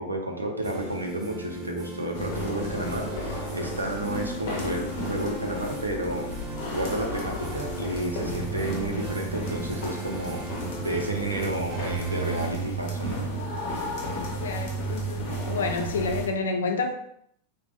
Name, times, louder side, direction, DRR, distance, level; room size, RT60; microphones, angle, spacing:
voice 1, 0.0-6.3 6.7-10.4 10.8-13.2, right 1 dB, 80° right, 1 dB, 0.6 m, -31 dB
sound 1, 0.6-12.5, right 2 dB, 35° right, 0.6 m, -38 dB
fast steps downstairs in a large stairwell, 2.1-16.3, right 1 dB, 45° left, 0.9 m, -33 dB
voice 2, 14.4-16.9, left 4 dB, 65° left, 4 dB, 0.5 m, -29 dB
3.4 x 2.3 x 3.0 m, 0.68 s
figure-of-eight pair, 90°, 0 cm